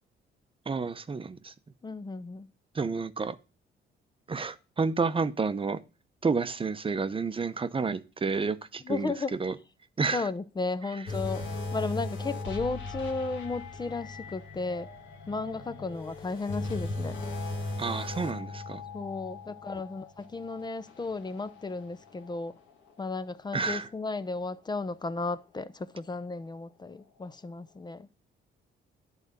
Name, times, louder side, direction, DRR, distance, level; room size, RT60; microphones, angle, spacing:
voice 1, 0.7-1.5 2.7-3.4 4.3-5.8 6.2-9.1 9.4-9.5 10.0-10.2 17.8-18.8 23.5-23.9, right 4 dB, 25° right, 0.7 m, -30 dB
voice 2, 1.8-2.5 8.8-9.3 10.1-14.9 15.3-17.2 18.9-22.6 23.0-28.1, left 3 dB, 20° left, 0.6 m, -34 dB
sound 1, 11.1-22.5 22.9-23.1 23.7-23.8, left 2 dB, 75° left, 1.9 m, -38 dB
11.0 x 4.0 x 5.2 m
cardioid pair, 90°, 20 cm